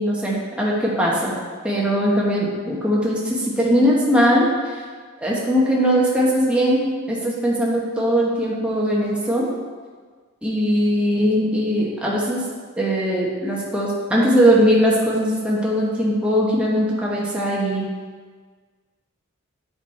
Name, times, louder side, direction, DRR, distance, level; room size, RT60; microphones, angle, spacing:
voice 1, 0.0-1.3 1.6-4.5 5.2-9.5 10.4-12.4 12.8-17.8, equal, 5° right, -5 dB, 1.2 m, -20 dB
8.1 x 5.5 x 4.3 m, 1.5 s
head